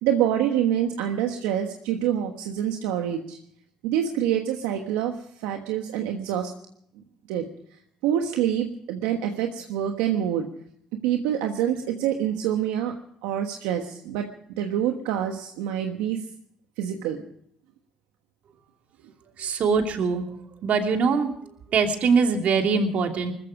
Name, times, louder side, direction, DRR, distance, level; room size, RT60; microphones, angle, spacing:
voice 1, 0.0-3.4 3.8-6.5 7.0-7.5 8.0-10.5 11.0-13.0 13.2-14.3 14.6-16.2 16.8-17.2, right 10 dB, 90° right, 4 dB, 1.3 m, -26 dB
voice 2, 19.4-20.3 20.6-21.3 21.7-23.3, right 5 dB, 65° right, 4 dB, 2.8 m, -22 dB
20.0 x 14.5 x 5.0 m, 0.69 s
supercardioid pair, 60°, 3 cm